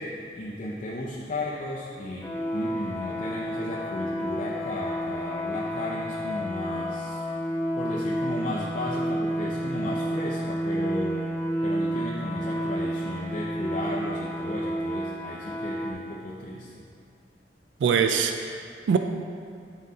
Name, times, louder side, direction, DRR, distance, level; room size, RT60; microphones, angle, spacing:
voice 1, 0.0-7.2 7.8-11.2 11.6-16.9, left 1 dB, 45° left, -5 dB, 0.5 m, -34 dB
sound 1, 2.2-15.9, equal, 15° left, 1.0 m, -30 dB
voice 2, 17.8-19.0, right 6 dB, 80° right, 6 dB, 0.3 m, -23 dB
7.5 x 3.9 x 4.0 m, 2.3 s
head